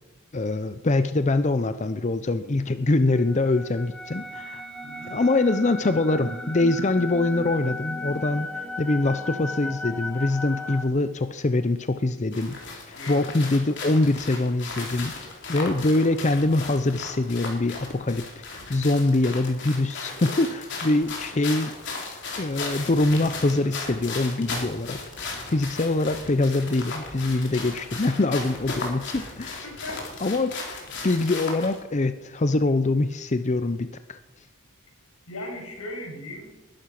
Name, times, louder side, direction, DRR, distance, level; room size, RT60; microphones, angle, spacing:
voice 1, 0.3-4.6 5.1-12.6 12.9-21.7 22.4-29.7 30.2-30.5 31.0-34.2, left 2 dB, 35° left, 11 dB, 0.6 m, -24 dB
sound 1, 3.1-10.8, left 1 dB, 5° left, 2.2 m, -35 dB
sound 2, 12.3-31.8, left 3 dB, 55° left, 3.7 m, -36 dB
voice 2, 29.6-30.1 35.3-36.5, left 1 dB, 90° left, 1 dB, 6.7 m, -38 dB
20.0 x 12.0 x 5.9 m, 1.1 s
head